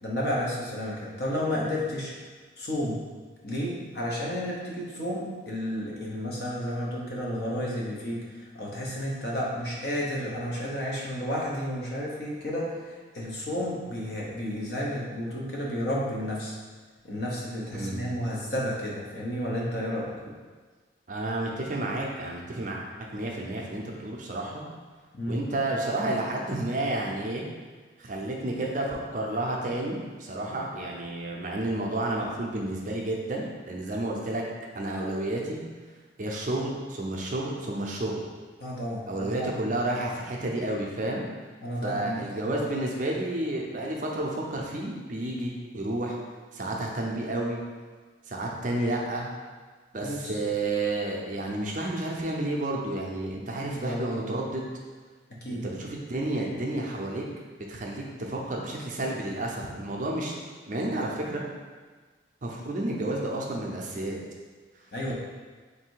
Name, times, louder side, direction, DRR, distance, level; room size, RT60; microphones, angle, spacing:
voice 1, 0.0-2.1 2.6-3.0 3.4-16.6 17.0-20.1 25.1-25.4 38.6-39.5 41.6-42.6 50.0-50.3 53.7-54.0 55.4-55.6 64.9-65.1, equal, 55° left, -4 dB, 0.8 m, -32 dB
voice 2, 17.7-18.0 21.1-22.8 23.1-24.6 25.3-27.4 28.0-34.4 34.7-35.6 36.2-38.1 39.1-41.2 41.8-46.2 46.5-47.6 48.3-49.3 49.9-54.6 55.5-57.2 57.7-60.3 60.7-61.4 62.4-64.2, right 1 dB, 40° right, -1 dB, 0.5 m, -31 dB
3.3 x 2.6 x 4.5 m, 1.4 s
head